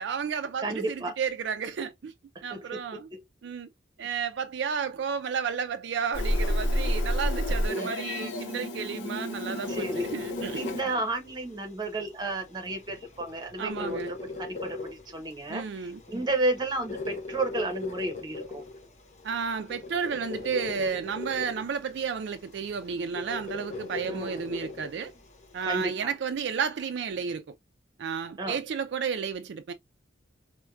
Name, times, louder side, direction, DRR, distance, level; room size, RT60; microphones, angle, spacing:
voice 1, 0.0-2.1 2.4-3.1 3.4-3.7 4.0-10.6 13.6-14.1 15.5-16.0 19.2-25.1 25.5-27.4 28.0-29.7, right 6 dB, 65° right, 0.3 m, -32 dB
voice 2, 0.6-1.1 2.3-2.8 3.1-3.2 7.8-7.9 9.5-10.1 10.5-18.6 24.0-24.4 25.6-26.1 28.4-28.6, right 2 dB, 20° right, 0.8 m, -32 dB
Meow, 6.1-10.8, equal, 80° left, 0.8 m, -29 dB
sound 1, 9.6-25.9, left 3 dB, 35° left, 0.6 m, -40 dB
4.3 x 2.1 x 2.3 m
head